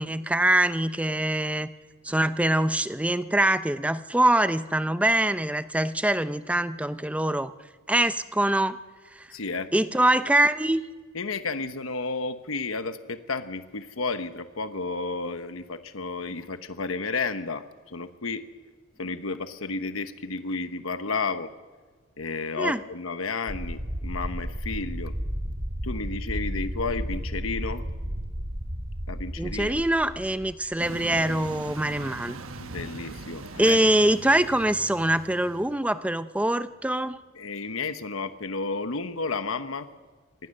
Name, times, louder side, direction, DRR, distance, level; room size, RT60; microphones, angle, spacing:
voice 1, 0.0-1.7 2.0-7.5 7.9-8.8 9.1-9.3 9.7-10.8 22.6-22.8 29.4-32.4 33.6-37.2, right 1 dB, 5° right, 12 dB, 0.6 m, -24 dB
voice 2, 9.3-9.7 11.1-18.5 19.0-21.5 22.2-25.1 25.8-27.8 29.1-29.7 32.6-33.8 37.4-39.9, left 4 dB, 75° left, 10 dB, 1.1 m, -32 dB
sound 1, 23.5-31.1, equal, 40° right, 2.5 m, -33 dB
sound 2, 30.8-35.8, right 3 dB, 80° right, 1.2 m, -40 dB
25.0 x 20.0 x 6.6 m, 1.4 s
head